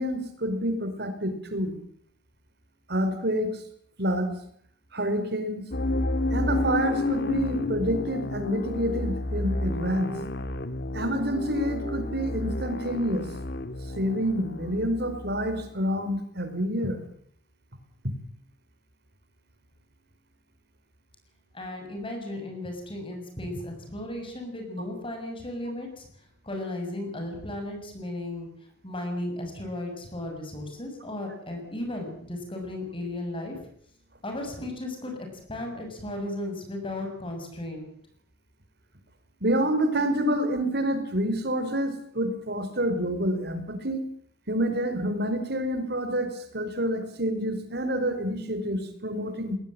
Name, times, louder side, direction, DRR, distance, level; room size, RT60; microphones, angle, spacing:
voice 1, 0.0-1.8 2.9-3.5 4.0-4.4 4.9-5.7 6.3-10.2 10.9-13.3 13.9-17.0 39.4-44.0 44.5-49.6, equal, 60° right, 9 dB, 4.8 m, -28 dB
sound 1, 5.7-15.7, left 2 dB, 60° left, 1.7 m, -31 dB
voice 2, 21.5-26.0 26.4-28.5 28.8-33.6 34.2-37.9, left 1 dB, 30° left, 3 dB, 6.9 m, -35 dB
21.0 x 20.0 x 8.9 m, 0.64 s
head